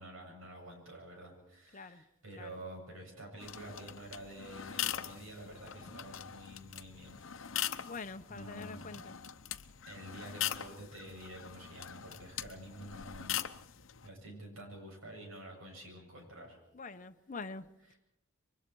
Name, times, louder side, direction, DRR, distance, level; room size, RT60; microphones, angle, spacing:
voice 1, 0.0-7.2 7.7-8.0 8.3-9.1 9.9-13.5 14.0-16.6 17.8-18.0, right 1 dB, 75° right, 7.7 m, -49 dB
voice 2, 1.7-2.0 2.4-2.6 7.8-9.2 16.7-17.7, left 4 dB, 40° left, 0.8 m, -45 dB
sound 1, 3.4-14.1, left 11 dB, 65° left, 0.8 m, -41 dB
28.5 x 24.0 x 4.7 m
head